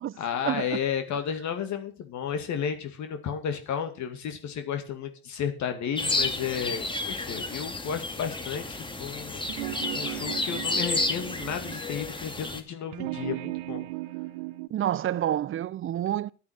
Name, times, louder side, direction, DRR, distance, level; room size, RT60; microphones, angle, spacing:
voice 1, 0.2-13.8, left 8 dB, 55° left, 2.3 m, -33 dB
sound 1, 6.0-12.6, left 2 dB, 15° left, 2.2 m, -31 dB
sound 2, 9.4-11.9 12.9-14.7, right 21 dB, 80° right, 0.8 m, -36 dB
voice 2, 14.7-16.3, right 11 dB, 40° right, 0.7 m, -28 dB
11.0 x 8.6 x 6.4 m
supercardioid pair, 75°, 34 cm